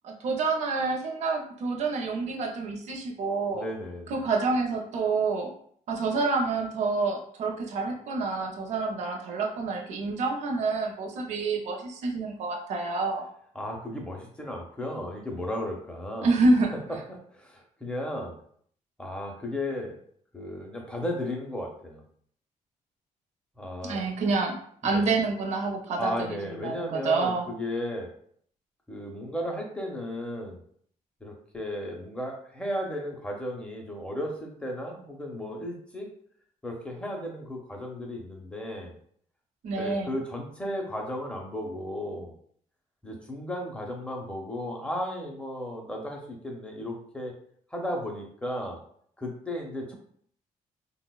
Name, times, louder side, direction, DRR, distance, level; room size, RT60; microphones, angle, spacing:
voice 1, 0.0-3.6 4.1-5.5 5.9-13.2 16.2-16.7 23.8-24.5 24.8-26.1 26.6-27.5 39.6-40.1, right 3 dB, 60° right, 1 dB, 0.5 m, -27 dB
voice 2, 3.5-4.1 13.5-16.3 17.1-18.3 19.0-19.9 20.3-22.0 23.6-24.1 24.8-25.1 26.0-28.1 28.9-30.6 31.2-36.1 36.6-38.9 39.8-42.3 43.0-47.3 47.7-48.8 49.2-50.0, left 1 dB, 10° left, 1 dB, 0.5 m, -34 dB
3.9 x 2.0 x 2.2 m, 0.62 s
cardioid pair, 160°, 13 cm